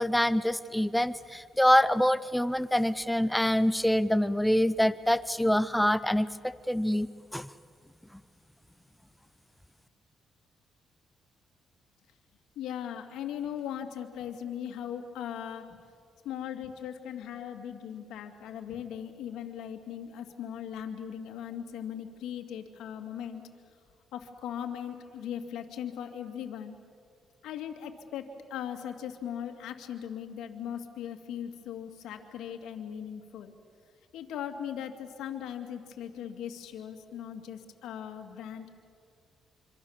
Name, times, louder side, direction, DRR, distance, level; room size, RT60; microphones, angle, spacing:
voice 1, 0.0-7.5, equal, 5° left, 15 dB, 0.6 m, -25 dB
voice 2, 12.6-15.8 16.2-23.4 24.1-26.8 27.4-33.5 34.1-38.7, left 9 dB, 85° left, 5 dB, 2.4 m, -39 dB
26.0 x 25.5 x 7.4 m, 2.3 s
cardioid pair, 90°, 0 cm